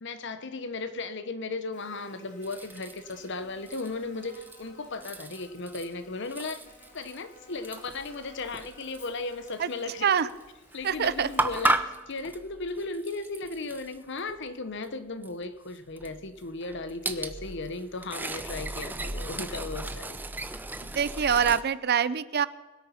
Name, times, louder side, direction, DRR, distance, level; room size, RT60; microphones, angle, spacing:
voice 1, 0.0-6.6 6.9-10.1 10.7-20.2, left 3 dB, 60° left, 11 dB, 1.0 m, -36 dB
Buzz, 1.7-11.6, left 1 dB, 35° left, 2.6 m, -55 dB
sound 1, 2.4-3.3 3.7-4.7 4.9-5.9 6.2-9.7 10.1-10.3 10.7-14.4 14.8-14.9 15.2-15.3 15.9-21.6, right 2 dB, 10° right, 0.6 m, -35 dB
voice 2, 10.8-11.3 20.8-22.5, right 7 dB, 50° right, 16 dB, 0.5 m, -25 dB
20.5 x 8.5 x 5.7 m, 1.2 s
head